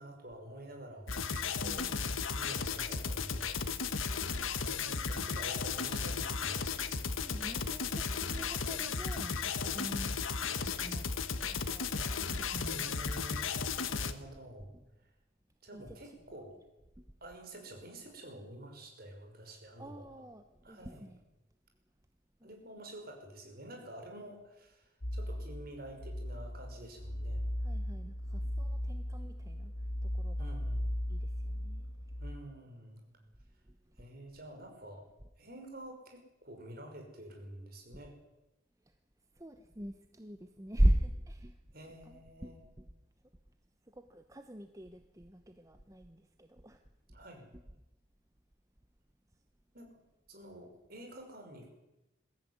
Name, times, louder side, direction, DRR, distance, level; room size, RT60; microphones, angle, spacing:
voice 1, 0.0-1.9 2.3-3.6 4.5-6.6 9.6-9.9 11.9-12.3 12.7-14.7 15.6-16.6 17.2-20.1 20.6-21.1 22.4-27.4 30.4-30.9 32.2-33.0 34.0-35.1 35.4-38.2 41.7-42.6 47.1-47.4 49.7-49.9 50.3-51.7, right 1 dB, 50° right, 3 dB, 5.7 m, -49 dB
sound 1, 1.1-14.1, left 5 dB, 90° left, 1.5 m, -35 dB
voice 2, 1.6-2.0 5.2-5.3 7.2-9.3 9.6-10.1 10.6-11.9 12.5-12.9 15.7-16.0 17.0-17.1 19.8-21.2 22.4-22.5 27.6-29.7 30.0-30.6 31.1-31.8 39.4-41.6 42.1-42.9 44.0-46.8 47.5-47.6, right 1 dB, 15° right, 7 dB, 1.0 m, -38 dB
sound 2, 25.0-32.4, equal, 65° left, 1.7 m, -37 dB
22.5 x 15.0 x 9.6 m, 0.96 s
head